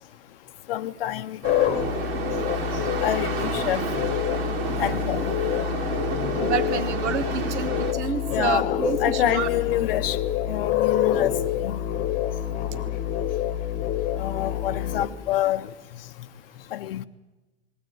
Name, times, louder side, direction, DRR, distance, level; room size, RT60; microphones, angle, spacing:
voice 1, 0.7-1.4 3.0-3.9 4.8-5.3 8.3-10.2 10.5-11.8 14.2-15.7 16.7-17.1, left 13 dB, 55° left, 0.7 m, -27 dB
sound 1, 1.4-15.1, left 11 dB, 25° left, 1.3 m, -27 dB
sound 2, 1.4-7.9, right 6 dB, 60° right, 2.4 m, -31 dB
voice 2, 6.4-9.5 12.7-12.9, right 6 dB, 75° right, 1.7 m, -29 dB
21.0 x 16.5 x 9.1 m
supercardioid pair, 165°, 35 cm